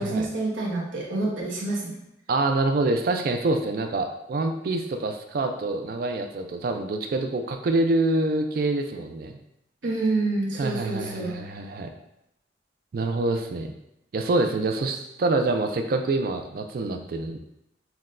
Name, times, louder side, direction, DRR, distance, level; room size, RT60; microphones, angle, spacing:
voice 1, 0.0-1.9 9.8-11.3, right 2 dB, 80° right, -3 dB, 0.9 m, -27 dB
voice 2, 2.3-9.4 10.6-11.9 12.9-13.7 14.1-17.4, right 2 dB, 50° right, 5 dB, 0.3 m, -26 dB
5.8 x 2.2 x 2.5 m, 0.85 s
head